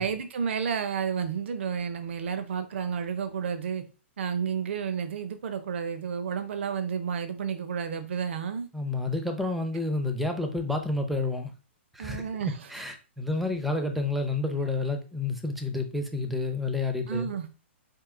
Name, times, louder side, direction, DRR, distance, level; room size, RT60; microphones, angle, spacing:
voice 1, 0.0-3.8 4.2-8.7 12.0-12.7 17.1-17.5, right 7 dB, 70° right, 0.7 m, -31 dB
voice 2, 8.7-11.5 11.9-12.2 12.7-17.3, left 3 dB, ahead, 0.5 m, -29 dB
4.6 x 2.8 x 3.7 m
hypercardioid pair, 155°, 7 cm